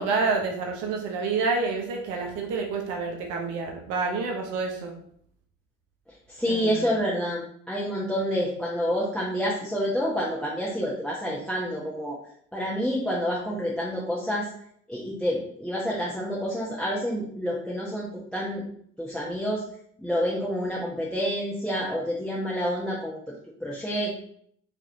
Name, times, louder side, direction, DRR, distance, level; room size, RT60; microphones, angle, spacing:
voice 1, 0.0-4.9 6.5-6.7, right 4 dB, 70° right, 2 dB, 1.0 m, -28 dB
voice 2, 6.3-12.2 12.5-14.5 14.9-18.6 19.0-19.6 20.0-23.2 23.6-24.2, equal, ahead, -5 dB, 1.1 m, -28 dB
5.1 x 3.0 x 2.8 m, 0.64 s
hypercardioid pair, 60°, 32 cm